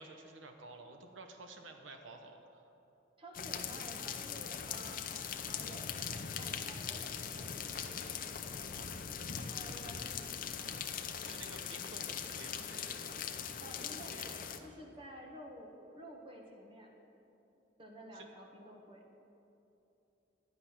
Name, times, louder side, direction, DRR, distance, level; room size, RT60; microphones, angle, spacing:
voice 1, 0.0-2.7 11.2-14.3 18.1-18.3, right 3 dB, 90° right, 5 dB, 0.9 m, -53 dB
voice 2, 3.2-8.9 9.2-10.9 13.6-16.9 17.8-19.2, equal, 30° right, 0 dB, 1.3 m, -52 dB
sound 1, 3.3-14.6, left 7 dB, 45° left, 0.6 m, -41 dB
11.5 x 9.6 x 5.7 m, 2.9 s
head